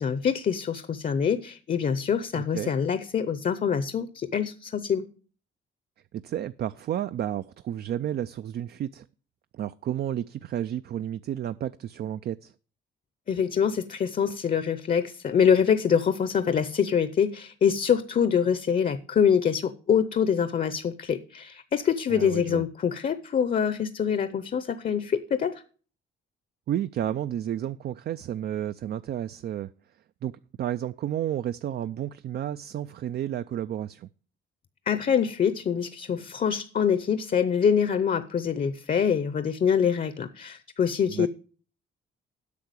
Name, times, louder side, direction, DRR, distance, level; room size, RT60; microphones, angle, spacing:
voice 1, 0.0-5.1 13.3-25.6 34.9-41.3, left 7 dB, 45° left, 0.7 m, -25 dB
voice 2, 2.3-2.7 6.1-9.1 9.5-12.5 22.1-22.6 26.7-29.7 30.2-30.3 30.6-34.1 41.1-41.3, right 11 dB, 55° right, 0.4 m, -31 dB
8.4 x 5.8 x 8.0 m
cardioid pair, 90°, 20 cm